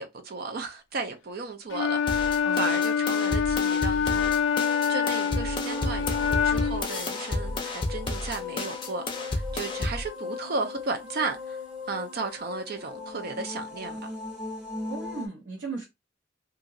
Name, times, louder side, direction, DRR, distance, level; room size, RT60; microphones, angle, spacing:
voice 1, 0.0-4.3 4.9-11.6 11.9-14.1, right 3 dB, 55° right, 0.5 m, -34 dB
Wind instrument woodwind instrument, 1.7-6.9, left 7 dB, 80° left, 0.4 m, -26 dB
sound 1, 2.1-10.1, left 2 dB, 25° left, 0.5 m, -32 dB
voice 2, 2.4-2.8 14.9-15.8, right 4 dB, 75° right, 1.0 m, -37 dB
sound 2, 4.6-15.3, left 4 dB, 5° right, 1.1 m, -39 dB
2.9 x 2.6 x 2.6 m
head